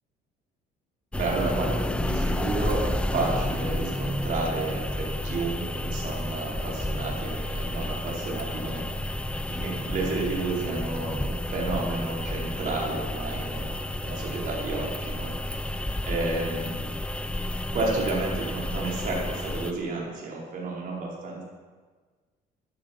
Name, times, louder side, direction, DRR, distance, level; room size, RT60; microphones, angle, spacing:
sound 1, 1.1-19.7, left 1 dB, 5° left, 0.7 m, -31 dB
voice 1, 1.1-15.8 16.1-16.9 17.7-21.4, right 3 dB, 55° right, -3 dB, 4.8 m, -31 dB
13.0 x 11.0 x 6.0 m, 1.4 s
cardioid pair, 110°, 17 cm